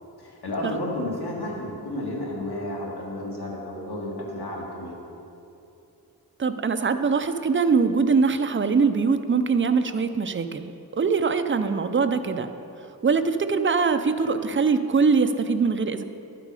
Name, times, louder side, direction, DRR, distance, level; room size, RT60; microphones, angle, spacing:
voice 1, 0.2-5.0, left 1 dB, 80° left, -3 dB, 2.2 m, -32 dB
voice 2, 6.4-12.5 13.0-16.0, right 5 dB, 30° right, 9 dB, 0.5 m, -22 dB
12.0 x 7.7 x 4.9 m, 2.8 s
wide cardioid pair, 85°, 38 cm